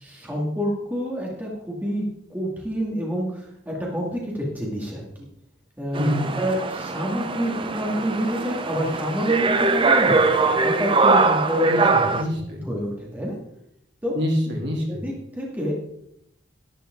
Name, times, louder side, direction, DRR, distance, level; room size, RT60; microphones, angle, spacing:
voice 1, 0.0-5.1 5.8-6.1 6.4-12.2 12.7-13.4 14.0-14.2 14.9-15.7, equal, 10° right, -3 dB, 2.2 m, -28 dB
sound 1, 5.9-12.2, right 3 dB, 25° right, 0.6 m, -22 dB
voice 2, 6.0-6.3 11.7-12.7 14.1-15.0, equal, 65° right, -1 dB, 3.2 m, -26 dB
11.5 x 10.5 x 3.8 m, 0.75 s
head